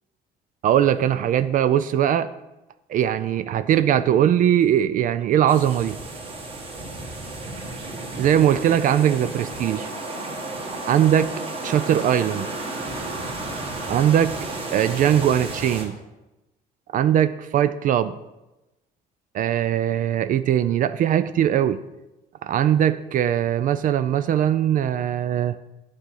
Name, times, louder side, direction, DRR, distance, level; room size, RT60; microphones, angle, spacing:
voice 1, 0.6-2.3 2.9-6.0 8.2-9.9 10.9-11.3 11.6-12.5 13.9-14.4 14.7-15.9 16.9-18.1 19.3-21.8 22.4-25.6, right 10 dB, 55° right, 12 dB, 0.4 m, -20 dB
sound 1, 5.5-15.8, right 2 dB, 35° right, 1.7 m, -33 dB
9.8 x 3.9 x 6.4 m, 1.0 s
cardioid pair, 110°, 17 cm